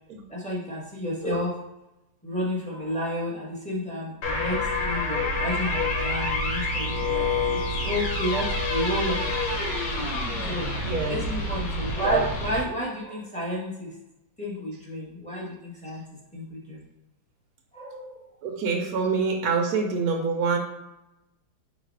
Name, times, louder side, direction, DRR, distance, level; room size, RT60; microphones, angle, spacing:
voice 1, 0.3-1.6 2.2-9.6 10.4-10.7 11.0-13.9 14.4-16.0 16.3-16.8 17.7-18.2, equal, 5° left, -6 dB, 0.9 m, -31 dB
sound 1, 4.2-12.6, left 2 dB, 85° left, 1.5 m, -27 dB
voice 2, 10.8-11.2 18.4-20.6, right 4 dB, 70° right, 2 dB, 1.0 m, -26 dB
4.0 x 2.6 x 4.6 m, 0.92 s
omnidirectional pair, 1.9 m